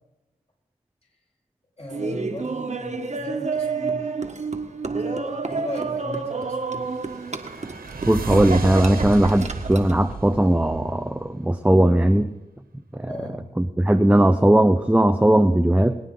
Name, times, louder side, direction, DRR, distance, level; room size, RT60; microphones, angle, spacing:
voice 1, 1.8-4.2 4.8-7.0 13.0-13.4, left 1 dB, 40° left, -3 dB, 6.0 m, -37 dB
Laughter, 1.9-10.0, right 4 dB, 45° right, 1.5 m, -29 dB
sound 1, 6.4-11.3, right 4 dB, 70° right, 1.8 m, -33 dB
voice 2, 8.1-12.3 13.0-13.1 13.6-16.0, right 1 dB, 10° right, 7 dB, 0.8 m, -18 dB
22.0 x 9.3 x 3.9 m, 1.1 s
supercardioid pair, 40°, 16 cm